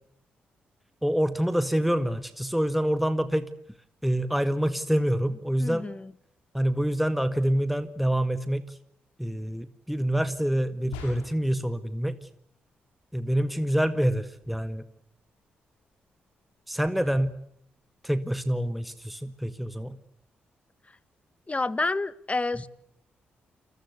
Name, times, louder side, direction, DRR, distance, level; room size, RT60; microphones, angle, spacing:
voice 1, 1.0-3.5 4.0-5.9 6.5-8.8 9.2-12.2 13.1-14.9 16.7-17.3 18.0-20.0, equal, ahead, 10 dB, 1.9 m, -26 dB
voice 2, 5.6-6.1 21.5-22.7, left 3 dB, 25° left, 16 dB, 1.6 m, -29 dB
sound 1, 10.9-11.6, left 5 dB, 90° left, 5.4 m, -41 dB
29.0 x 22.0 x 8.3 m, 0.70 s
hypercardioid pair, 40°, 5 cm